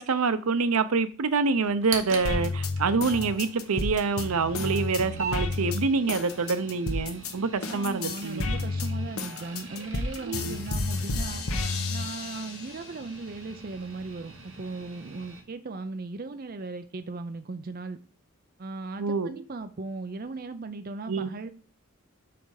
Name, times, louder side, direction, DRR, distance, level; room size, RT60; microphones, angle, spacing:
voice 1, 0.0-8.5 10.2-10.6 19.0-19.4 21.1-21.3, right 4 dB, 85° right, 0.6 m, -26 dB
sound 1, 1.6-15.4, right 4 dB, 60° right, 1.2 m, -42 dB
sound 2, 2.2-7.3 7.6-12.8 13.3-14.2, left 3 dB, 80° left, 1.0 m, -31 dB
voice 2, 7.7-11.5 11.9-18.0 18.6-21.5, right 3 dB, 40° right, 0.5 m, -37 dB
5.8 x 5.3 x 4.8 m
head